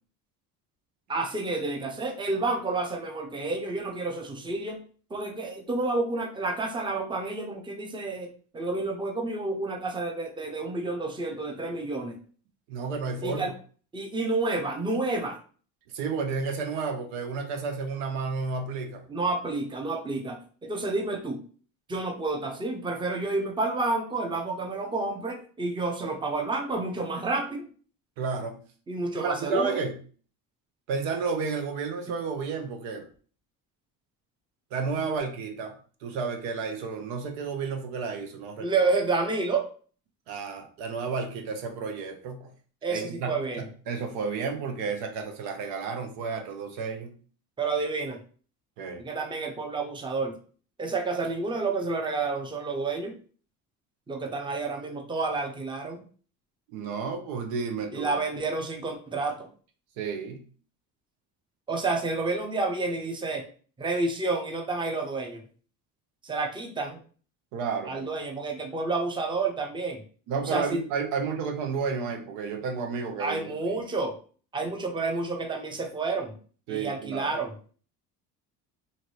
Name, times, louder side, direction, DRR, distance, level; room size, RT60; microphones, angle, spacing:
voice 1, 1.1-4.8 5.1-12.2 13.2-13.5 13.9-15.4 19.1-21.4 21.9-27.7 28.9-29.8 38.6-39.7 42.8-43.7 47.6-48.2 49.0-50.4 50.8-53.2 54.1-56.0 57.9-59.5 61.7-63.5 63.8-65.4 66.2-67.0 67.9-70.0 70.4-70.8 73.2-74.1 74.5-76.4 76.7-77.5, right 3 dB, 10° right, 4 dB, 0.6 m, -30 dB
voice 2, 12.7-13.5 15.9-19.0 28.2-28.6 29.1-29.9 30.9-33.1 34.7-35.7 36.0-38.7 40.3-42.5 42.9-47.1 48.8-49.0 56.7-58.2 60.0-60.4 67.5-68.1 70.3-73.8 76.7-77.3, right 5 dB, 80° right, 5 dB, 0.7 m, -32 dB
2.7 x 2.6 x 3.0 m, 0.41 s
supercardioid pair, 75°, 42 cm